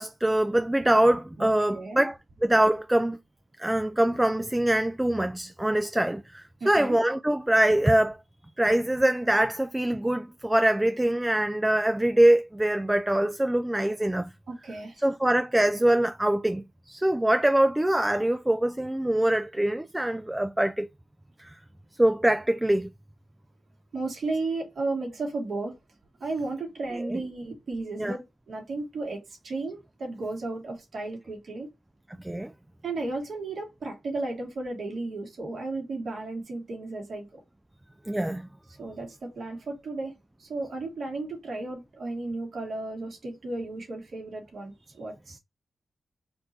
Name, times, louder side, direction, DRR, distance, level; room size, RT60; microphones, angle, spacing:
voice 1, 0.0-3.2 3.6-8.2 8.6-14.3 15.0-20.9 21.4-21.6 22.0-22.9 26.9-27.2 28.0-28.1 32.2-32.5 38.1-38.5, right 1 dB, 15° right, 0.4 m, -24 dB
voice 2, 6.6-7.0 14.5-15.0 23.9-25.8 26.2-31.7 32.8-37.4 38.8-45.4, right 2 dB, 70° right, 2.0 m, -34 dB
4.4 x 2.6 x 4.3 m
cardioid pair, 60°, 0 cm